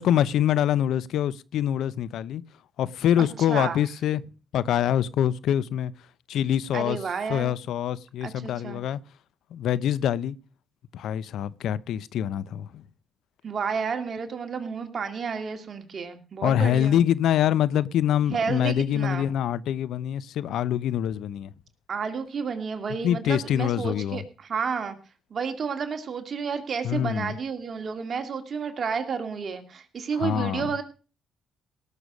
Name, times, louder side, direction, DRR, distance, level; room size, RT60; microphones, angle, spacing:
voice 1, 0.0-2.4 2.8-4.2 4.5-5.9 6.3-7.0 7.3-9.0 9.5-10.4 10.9-12.8 16.4-21.5 23.0-24.2 26.8-27.3 30.1-30.7, left 10 dB, 75° left, 0.6 m, -25 dB
voice 2, 3.2-3.8 6.7-7.5 8.2-8.8 13.4-17.1 18.3-19.3 21.9-25.0 25.3-30.8, right 6 dB, 50° right, 2.3 m, -31 dB
18.0 x 6.9 x 6.2 m
cardioid pair, 90°, 0 cm